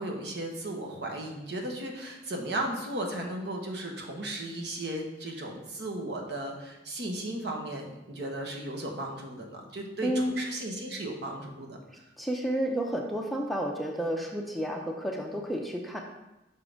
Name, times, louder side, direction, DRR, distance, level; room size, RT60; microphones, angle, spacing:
voice 1, 0.0-11.8, right 1 dB, 65° right, 0 dB, 1.1 m, -35 dB
voice 2, 10.0-10.3 12.2-16.0, equal, ahead, 0 dB, 0.5 m, -31 dB
5.6 x 3.7 x 5.0 m, 0.96 s
head